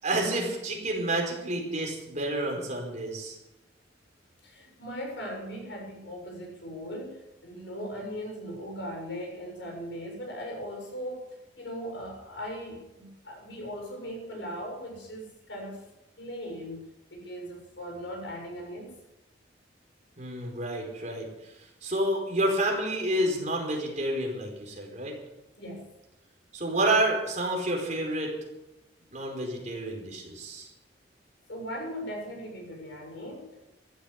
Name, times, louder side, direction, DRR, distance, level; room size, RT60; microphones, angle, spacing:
voice 1, 0.0-3.4 20.2-21.3 21.8-25.1 26.5-28.3 29.1-30.7, right 1 dB, 40° right, 0 dB, 4.8 m, -29 dB
voice 2, 4.4-15.8 16.2-18.9 25.6-25.9 31.5-33.7, equal, 70° left, 1 dB, 7.2 m, -39 dB
14.5 x 13.0 x 7.3 m, 0.92 s
head